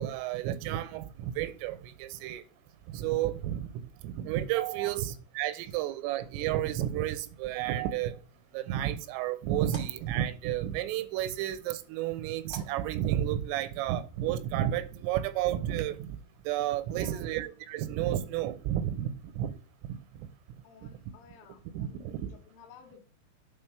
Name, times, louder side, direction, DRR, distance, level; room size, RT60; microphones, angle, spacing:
voice 1, 0.0-2.4 2.9-3.7 4.0-8.2 8.5-16.1 16.5-19.5 20.2-20.3 21.7-22.3, right 12 dB, 85° right, 3.2 m, -31 dB
voice 2, 4.7-5.1 5.6-5.7 8.7-8.8 16.9-17.4 20.6-23.0, left 6 dB, 85° left, 3.9 m, -54 dB
sound 1, 8.3-13.7, right 2 dB, 35° right, 0.4 m, -55 dB
8.4 x 3.5 x 5.7 m
omnidirectional pair, 5.6 m